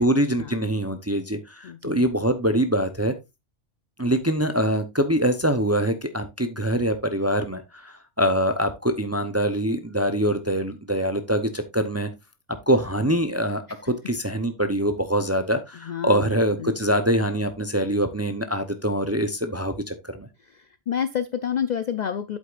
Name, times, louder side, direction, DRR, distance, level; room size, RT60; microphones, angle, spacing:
voice 1, 0.0-3.1 4.0-12.1 12.7-20.3, equal, 20° right, 0.5 m, -24 dB
voice 2, 1.6-2.1 13.7-13.8 15.8-16.3 16.6-16.7 20.5-22.4, left 8 dB, 60° left, 0.4 m, -29 dB
8.2 x 7.9 x 2.4 m
omnidirectional pair, 1.3 m